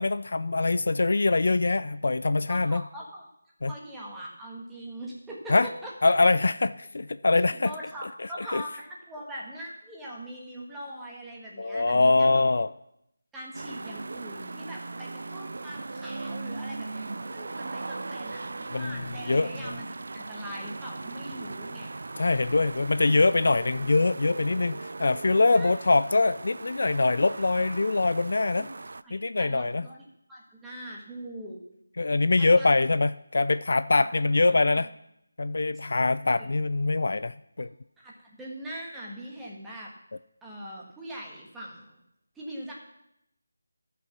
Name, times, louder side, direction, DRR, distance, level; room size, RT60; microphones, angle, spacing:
voice 1, 0.0-2.8 3.6-3.7 5.5-5.7 6.0-7.7 8.4-8.6 11.6-12.7 18.7-19.0 19.3-19.7 22.2-28.7 29.1-29.9 32.0-34.9 35.4-37.7, left 3 dB, 60° left, 14 dB, 0.4 m, -23 dB
voice 2, 2.5-3.3 3.7-5.9 7.5-12.5 13.3-21.9 25.5-25.7 28.5-28.7 29.0-30.0 30.3-31.6 32.4-32.7 34.5-34.8 35.7-35.9 37.6-37.7 38.0-39.9 40.4-42.0 42.3-42.7, right 1 dB, 5° right, -5 dB, 1.5 m, -42 dB
sound 1, 13.5-29.0, right 3 dB, 60° right, 0.3 m, -39 dB
12.5 x 5.8 x 5.9 m, 0.79 s
figure-of-eight pair, 170°, 0 cm